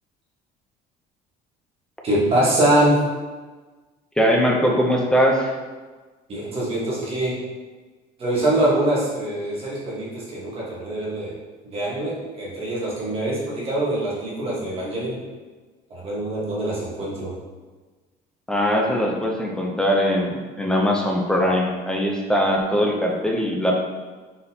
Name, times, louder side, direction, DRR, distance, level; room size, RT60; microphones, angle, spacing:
voice 1, 2.0-3.0 6.3-7.4 8.2-11.3 11.7-15.2 15.9-17.3, right 1 dB, 35° right, -5 dB, 1.1 m, -23 dB
voice 2, 4.2-5.5 18.5-20.3 20.6-23.7, equal, 5° left, -1 dB, 0.4 m, -21 dB
4.1 x 3.7 x 2.7 m, 1.3 s
cardioid pair, 170°, 18 cm